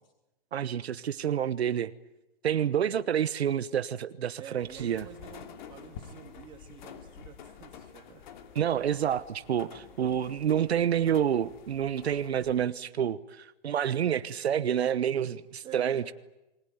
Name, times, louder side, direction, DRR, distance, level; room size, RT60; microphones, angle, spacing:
voice 1, 0.5-1.9 2.4-5.0 8.5-16.0, right 9 dB, 85° right, 1.1 m, -28 dB
voice 2, 4.4-8.3 10.1-10.3 15.6-16.0, right 7 dB, 15° right, 2.8 m, -48 dB
sound 1, 4.6-12.6, left 7 dB, 45° left, 2.9 m, -49 dB
28.5 x 20.5 x 9.5 m
hypercardioid pair, 160°, 31 cm